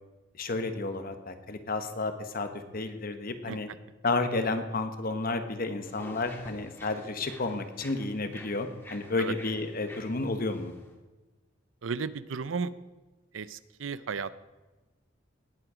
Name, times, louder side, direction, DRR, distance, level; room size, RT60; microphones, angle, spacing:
voice 1, 0.4-3.7 4.0-10.7, left 3 dB, 50° left, 8 dB, 1.2 m, -31 dB
sound 1, 5.8-10.9, left 1 dB, 10° left, 1.8 m, -49 dB
voice 2, 11.8-12.7 13.3-14.4, right 5 dB, 80° right, 16 dB, 0.6 m, -34 dB
18.5 x 7.8 x 4.9 m, 1.2 s
head